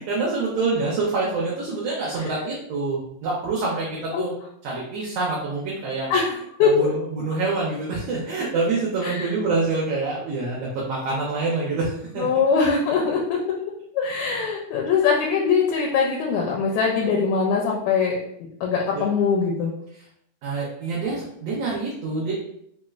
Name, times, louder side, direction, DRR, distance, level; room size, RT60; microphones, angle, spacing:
voice 1, 0.0-4.3 4.6-6.1 6.6-12.3 18.9-19.0 20.4-22.3, right 3 dB, 75° right, -5 dB, 1.5 m, -26 dB
voice 2, 6.1-6.9 9.0-9.3 12.2-13.4 13.9-18.2 18.6-19.7, left 5 dB, 80° left, -1 dB, 1.8 m, -22 dB
4.7 x 2.1 x 2.3 m, 0.73 s
omnidirectional pair, 3.3 m